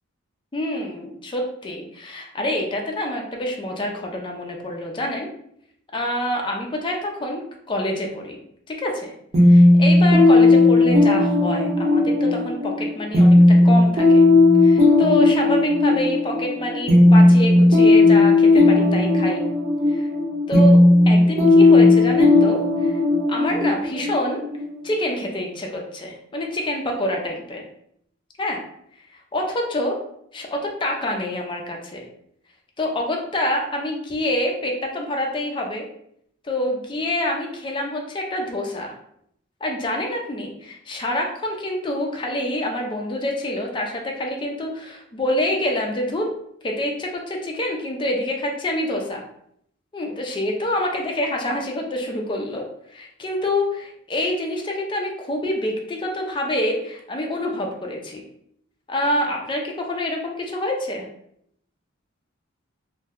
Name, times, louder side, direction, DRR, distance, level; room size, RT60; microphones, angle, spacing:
voice 1, 0.5-5.3 5.9-7.4 7.7-8.4 8.7-9.1 9.4-14.2 14.6-19.4 19.9-20.1 20.5-20.8 21.1-22.9 23.3-24.4 24.8-27.6 28.4-28.6 29.3-30.0 30.3-32.0 32.8-35.8 36.4-38.9 39.6-46.3 46.6-49.2 49.9-52.7 52.9-58.2 58.9-61.1, left 1 dB, 25° left, 0 dB, 0.4 m, -26 dB
sound 1, 9.3-24.9, left 2 dB, 35° right, 0.8 m, -15 dB
2.6 x 2.1 x 3.5 m, 0.71 s
head